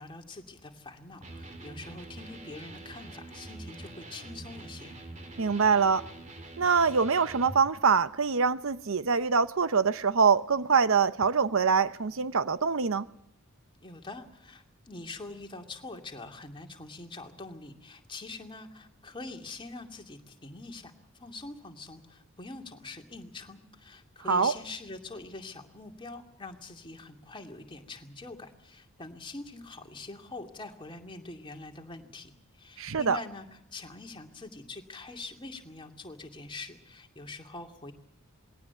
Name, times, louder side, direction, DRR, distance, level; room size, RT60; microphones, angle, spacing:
voice 1, 0.0-5.0 13.8-37.9, left 3 dB, 20° left, 2.4 m, -44 dB
Electric guitar, 1.2-7.6, right 2 dB, 35° right, 2.8 m, -45 dB
voice 2, 5.4-6.1 6.6-13.1 24.3-24.5 32.8-33.2, right 5 dB, 65° right, 0.8 m, -24 dB
21.5 x 17.5 x 8.3 m
head